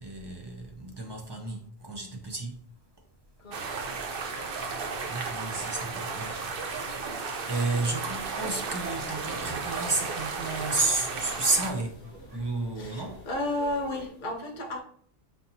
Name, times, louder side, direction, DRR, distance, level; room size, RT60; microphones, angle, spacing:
voice 1, 0.0-2.6 5.1-6.6 7.5-12.0 12.3-13.2, right 3 dB, 30° right, 0.5 m, -31 dB
sound 1, 3.5-11.7, right 4 dB, 60° right, 0.8 m, -34 dB
voice 2, 5.5-6.0 7.0-7.2 12.2-14.8, left 1 dB, 45° left, 0.9 m, -35 dB
sound 2, 8.1-14.1, right 1 dB, 85° right, 1.0 m, -48 dB
5.3 x 2.9 x 2.7 m
omnidirectional pair, 1.2 m